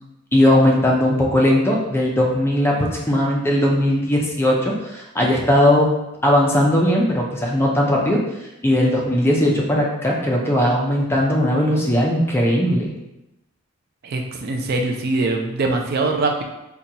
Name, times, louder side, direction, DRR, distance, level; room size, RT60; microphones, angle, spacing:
voice 1, 0.3-5.9 6.2-8.2 8.6-12.9, left 1 dB, 10° left, -2 dB, 0.5 m, -18 dB
voice 2, 14.0-16.4, right 3 dB, 50° right, 3 dB, 0.4 m, -22 dB
3.9 x 2.3 x 2.8 m, 0.91 s
head